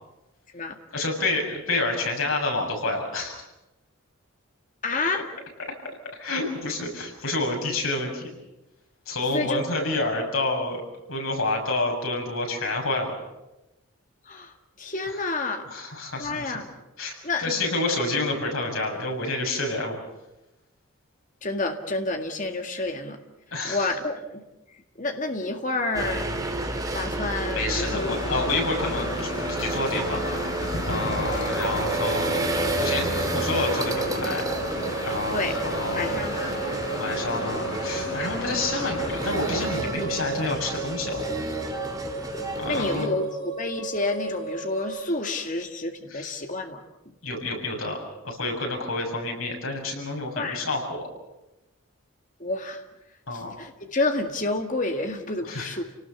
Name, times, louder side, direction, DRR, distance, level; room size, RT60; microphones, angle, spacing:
voice 1, 0.9-3.4 6.1-8.3 9.1-10.8 11.1-13.1 15.1-15.2 15.7-16.6 17.0-17.1 17.4-20.0 23.5-24.0 27.5-30.5 30.9-32.5 32.8-34.4 35.0-36.2 37.0-41.2 42.6-43.2 46.1-46.3 47.2-48.0 48.2-51.1 53.3-53.5 55.5-55.8, left 2 dB, 85° left, 1 dB, 7.0 m, -28 dB
voice 2, 4.8-5.3 9.3-9.6 14.3-15.7 16.2-16.7 17.2-17.6 21.4-23.2 23.6-26.3 26.9-28.3 35.3-35.5 36.0-36.6 42.7-47.1 50.4-50.6 52.4-52.8 53.3-55.8, left 2 dB, 40° left, 4 dB, 2.0 m, -29 dB
sound 1, 25.9-43.1, right 2 dB, 15° right, 1.9 m, -31 dB
sound 2, 27.8-39.8, left 1 dB, 55° left, 5.4 m, -34 dB
sound 3, 31.0-45.0, right 3 dB, 20° left, 5.7 m, -35 dB
29.5 x 19.0 x 7.1 m, 0.97 s
head